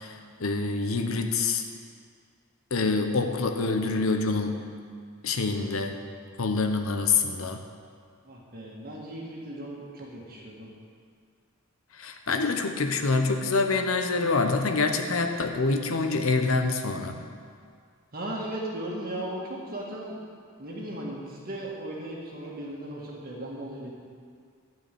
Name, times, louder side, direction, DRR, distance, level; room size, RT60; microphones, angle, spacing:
voice 1, 0.0-1.6 2.7-4.6 5.2-6.0 6.4-7.6 11.9-17.2, left 3 dB, 70° left, 6 dB, 0.9 m, -26 dB
voice 2, 8.2-10.7 18.1-20.2 20.6-23.9, right 1 dB, 45° right, -3 dB, 1.8 m, -37 dB
12.5 x 4.7 x 8.3 m, 2.1 s
head